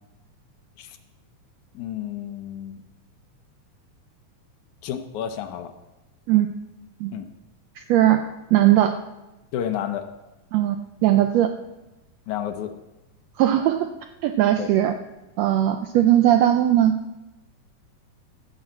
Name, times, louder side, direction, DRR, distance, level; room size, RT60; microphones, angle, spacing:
voice 1, 1.7-2.8 4.8-5.7 7.1-7.3 9.5-10.1 12.3-12.7 14.6-14.7, left 10 dB, 75° left, 7 dB, 2.2 m, -30 dB
voice 2, 7.8-8.2 8.5-8.9 10.5-10.8 11.0-11.5 13.4-13.9 14.2-14.9 15.4-16.9, right 12 dB, 80° right, 7 dB, 1.5 m, -18 dB
14.0 x 6.4 x 7.5 m, 1.0 s
omnidirectional pair, 3.6 m